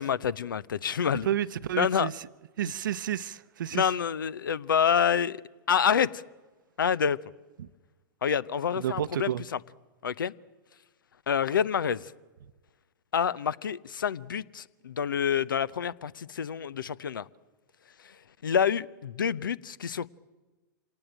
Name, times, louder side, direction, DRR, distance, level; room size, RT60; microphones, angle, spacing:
voice 1, 0.0-1.3 1.8-2.1 3.7-5.4 5.7-6.2 6.8-7.2 8.2-9.3 10.0-10.3 11.3-12.1 13.1-17.3 18.0-18.1 18.4-20.1, left 7 dB, 85° left, 0.7 m, -27 dB
voice 2, 1.2-2.2 2.6-3.9 7.6-7.7 8.7-9.4, right 10 dB, 75° right, 0.7 m, -31 dB
26.0 x 18.5 x 8.9 m
hypercardioid pair, 105°, 11 cm